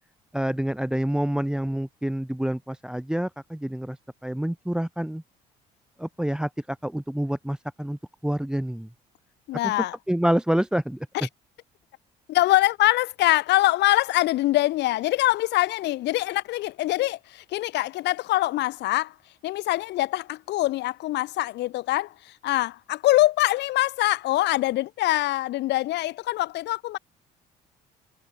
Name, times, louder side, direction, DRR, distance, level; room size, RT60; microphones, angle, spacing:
voice 1, 0.3-5.2 6.0-8.9 9.6-9.7 10.1-11.1, right 1 dB, 5° right, 1.4 m, -27 dB
voice 2, 9.5-10.0 12.3-19.1 19.4-27.0, left 16 dB, 70° left, 0.6 m, -24 dB
supercardioid pair, 75°, 19 cm